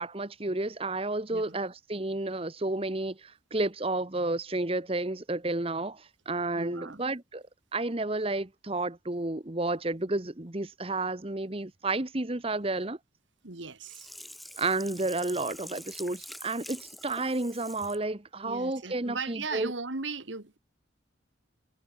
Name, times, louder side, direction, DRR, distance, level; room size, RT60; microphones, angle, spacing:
voice 1, 0.0-7.4 7.7-13.0 14.6-19.7, right 2 dB, 30° right, 1.1 m, -31 dB
voice 2, 6.6-7.0 13.4-14.1 18.4-20.6, right 4 dB, 75° right, 2.1 m, -37 dB
Sink (filling or washing), 13.8-18.0 18.5-18.6, equal, ahead, 5.9 m, -46 dB
head